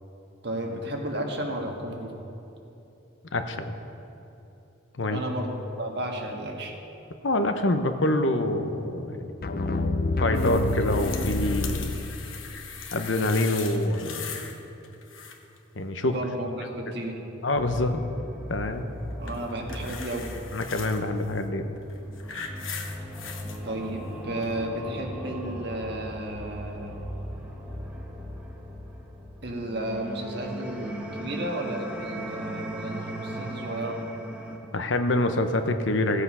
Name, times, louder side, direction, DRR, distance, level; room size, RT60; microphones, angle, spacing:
voice 1, 0.4-2.1 5.1-5.5 5.8-6.7 16.0-17.2 19.2-20.3 23.6-27.1 29.4-34.0, right 1 dB, 60° right, 1 dB, 1.6 m, -33 dB
voice 2, 3.3-3.7 5.0-5.2 7.2-9.3 10.2-12.0 12.9-14.4 15.7-16.2 17.4-18.0 18.5-18.9 20.5-21.7 34.7-36.2, left 1 dB, 70° left, 8 dB, 0.8 m, -26 dB
sound 1, 9.4-12.5, left 2 dB, 50° left, 0.5 m, -28 dB
sound 2, 10.3-14.6 14.8-15.6 19.3-21.0 21.8-23.6 24.4-24.5, left 6 dB, 90° left, 1.1 m, -39 dB
sound 3, 17.6-34.6, equal, 5° right, 1.2 m, -38 dB
15.5 x 8.2 x 5.6 m, 3.0 s
head